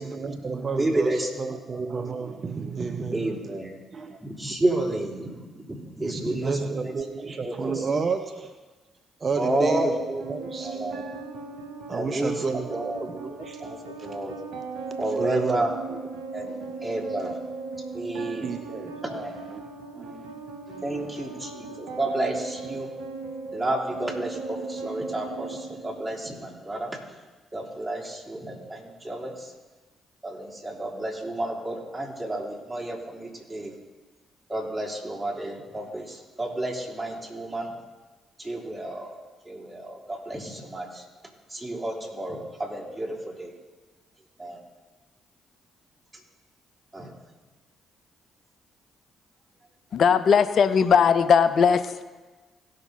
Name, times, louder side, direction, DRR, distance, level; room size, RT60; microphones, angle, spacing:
voice 1, 0.0-3.6 3.9-4.2 6.0-8.6 9.2-10.8 11.9-13.6 14.0-14.2 15.1-15.6 15.9-16.0 16.5-16.8 17.2-17.4 18.2-19.2 19.5-19.6 19.9-20.3 20.7-21.4 21.7-21.8, right 4 dB, 45° right, 7 dB, 0.7 m, -32 dB
voice 2, 0.8-1.3 3.0-3.8 4.2-6.9 7.4-7.9 9.4-10.2 10.6-11.0 11.9-12.4 12.7-13.0 13.6-14.4 15.0-15.7 16.3-16.5 16.8-17.4 17.9-18.5 19.0-19.5 20.8-22.9 23.5-27.0 27.5-29.5 30.2-33.7 34.5-37.7 38.4-39.1 39.4-41.0 41.5-43.5 44.4-44.6 46.9-47.1, right 1 dB, 20° right, -3 dB, 3.3 m, -31 dB
sound 1, 9.4-26.4, right 3 dB, 75° right, 1.0 m, -37 dB
voice 3, 49.9-52.0, left 6 dB, 60° left, 13 dB, 0.4 m, -19 dB
17.5 x 6.5 x 4.0 m, 1.3 s
hypercardioid pair, 45°, 0 cm